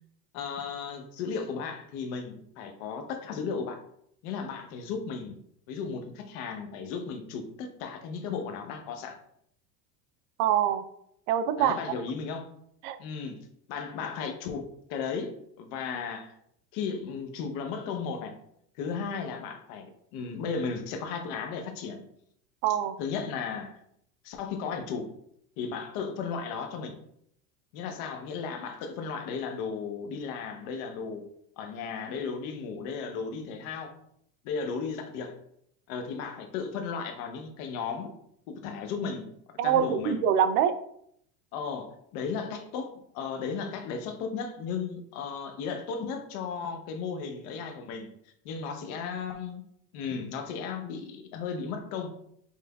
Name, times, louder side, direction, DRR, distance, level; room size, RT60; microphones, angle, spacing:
voice 1, 0.3-3.8 4.2-5.4 5.7-9.2 11.6-12.5 13.0-16.3 16.7-18.3 18.8-22.0 23.0-23.8 24.2-25.1 25.6-26.9 27.7-31.3 31.6-33.9 34.4-35.4 35.9-38.1 38.5-39.3 39.6-40.2 41.5-48.1 48.4-49.6 49.9-52.1, left 5 dB, 60° left, 0.9 m, -35 dB
voice 2, 10.4-10.9 11.3-11.8 12.8-13.0 22.6-23.0 39.6-40.8, right 9 dB, 70° right, 0.6 m, -24 dB
5.6 x 3.2 x 2.3 m
supercardioid pair, 135°, 46 cm